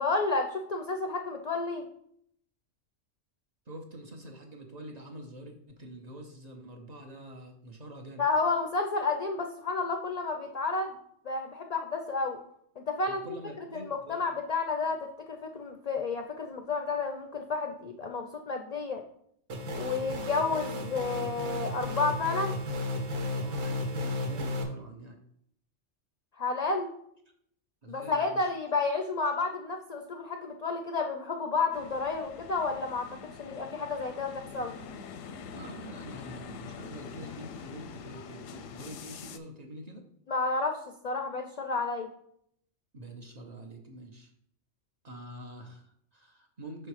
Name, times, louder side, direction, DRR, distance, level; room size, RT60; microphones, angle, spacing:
voice 1, 0.0-1.8 8.2-11.0 11.2-12.4 12.8-13.4 13.7-19.0 19.7-22.5 26.4-26.9 27.9-34.7 40.3-42.1, left 3 dB, 60° left, 4 dB, 0.4 m, -31 dB
voice 2, 3.7-8.2 13.1-14.2 23.4-25.2 27.8-28.5 35.5-40.0 42.9-44.3 45.0-46.9, right 1 dB, 40° right, 2 dB, 0.7 m, -46 dB
sound 1, 19.5-24.6, left 1 dB, 85° right, 1.3 m, -33 dB
sound 2, 31.7-39.4, left 6 dB, 85° left, 1.0 m, -45 dB
5.9 x 4.4 x 4.7 m, 0.71 s
omnidirectional pair, 1.3 m